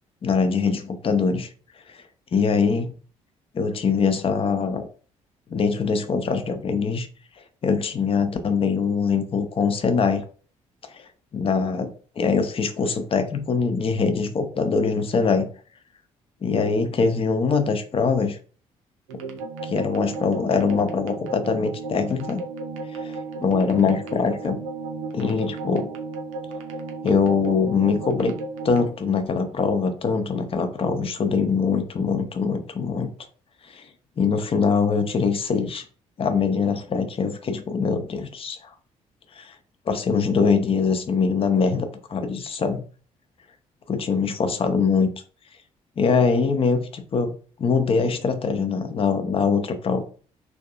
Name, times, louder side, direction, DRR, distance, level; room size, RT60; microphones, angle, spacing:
voice 1, 0.2-1.5 1.9-2.0 2.3-2.9 3.5-4.9 5.5-7.1 7.6-10.2 10.9-15.5 16.4-18.4 19.6-22.4 22.9-24.6 25.1-25.9 27.0-28.4 28.6-33.1 33.7-33.8 34.2-35.8 36.2-38.7 39.3-39.5 39.9-42.8 43.9-45.1 46.0-47.3 47.6-50.0, left 5 dB, 35° left, 8 dB, 0.6 m, -23 dB
sound 1, 19.1-28.9, right 4 dB, 75° right, 0.5 m, -34 dB
3.4 x 2.3 x 2.3 m, 0.40 s
figure-of-eight pair, 45°, 17 cm